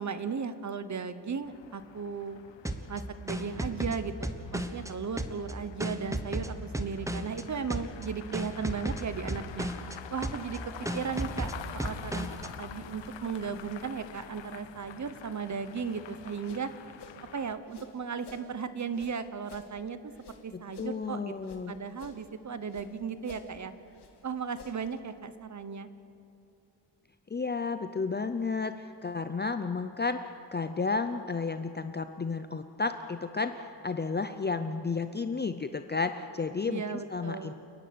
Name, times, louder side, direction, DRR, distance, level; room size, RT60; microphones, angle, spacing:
voice 1, 0.0-2.4 2.9-9.7 10.1-12.3 12.6-16.7 17.3-20.1 20.4-21.3 21.7-23.7 24.2-25.9 36.7-37.5, right 6 dB, 40° right, 12 dB, 1.0 m, -36 dB
sound 1, 1.4-17.6, left 9 dB, 85° left, 1.0 m, -47 dB
sound 2, 2.6-4.9 5.2-7.4 7.7-8.0 8.3-9.9 10.2-10.6 10.8-12.5, right 1 dB, 5° right, 1.0 m, -34 dB
sound 3, 16.4-18.5 18.9-21.6 21.9-22.9 23.2-25.0, left 4 dB, 65° left, 2.1 m, -52 dB
voice 2, 20.5-21.8 27.3-30.2 30.5-37.5, left 4 dB, 25° left, 9 dB, 0.6 m, -32 dB
29.5 x 11.0 x 9.4 m, 2.7 s
wide cardioid pair, 140°, 43 cm